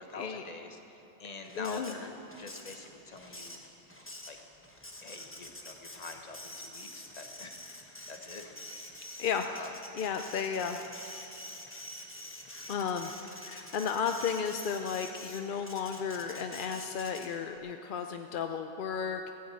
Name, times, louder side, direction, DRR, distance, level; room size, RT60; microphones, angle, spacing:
voice 1, 0.0-2.1 2.4-3.6 4.3-4.4 5.0-8.4 9.5-9.7, left 3 dB, 35° left, 5 dB, 1.1 m, -45 dB
Printer, 1.4-17.6, left 1 dB, 10° left, 1.1 m, -47 dB
voice 2, 1.6-1.9 9.2-9.4 9.9-10.8 12.7-13.1 13.4-19.3, left 7 dB, 55° left, 6 dB, 0.6 m, -33 dB
15.5 x 8.8 x 8.3 m, 2.9 s
omnidirectional pair, 1.3 m